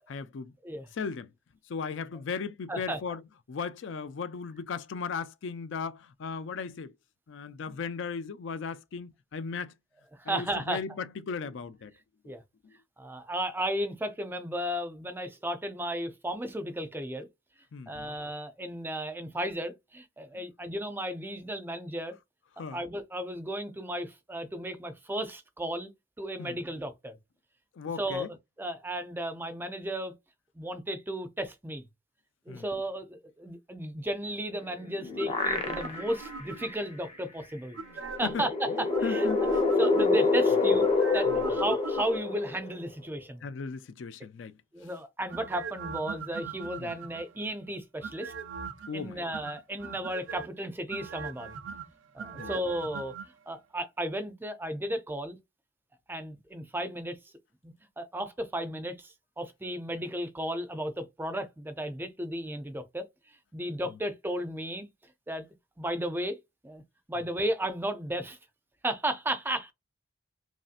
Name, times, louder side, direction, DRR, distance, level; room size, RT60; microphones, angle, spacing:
voice 1, 0.1-0.5 0.9-1.3 1.7-3.2 3.5-6.9 7.3-9.7 10.2-11.9 17.7-18.1 20.3-20.4 22.6-22.8 26.4-26.6 27.7-28.3 32.5-32.7 37.8-38.4 39.0-39.6 41.3-41.4 43.4-44.6 46.8-46.9 48.9-49.2 52.3-52.5, left 5 dB, 70° left, 0.4 m, -37 dB
voice 2, 2.7-3.0 10.2-10.8 12.2-12.4 13.0-17.3 17.9-22.1 22.7-25.9 26.2-27.2 28.0-30.1 30.6-31.8 32.5-37.8 38.2-39.3 39.8-40.9 41.1-43.5 44.7-48.3 48.9-51.6 52.1-53.1 53.5-55.4 56.1-57.2 57.6-63.0 63.5-64.9 65.3-65.4 65.8-66.4 66.6-66.8 67.1-68.4 68.8-69.7, right 1 dB, 10° right, 0.5 m, -34 dB
sound 1, 34.6-36.2 36.7-36.8 38.1-42.9, left 3 dB, 30° left, 0.8 m, -27 dB
sound 2, 35.2-37.0 37.7-38.5 38.9-40.4 40.8-42.5 45.3-47.4 48.0-48.9 49.3-50.5 50.9-53.3 53.5-53.6, right 5 dB, 70° right, 0.5 m, -40 dB
3.1 x 2.7 x 2.5 m
head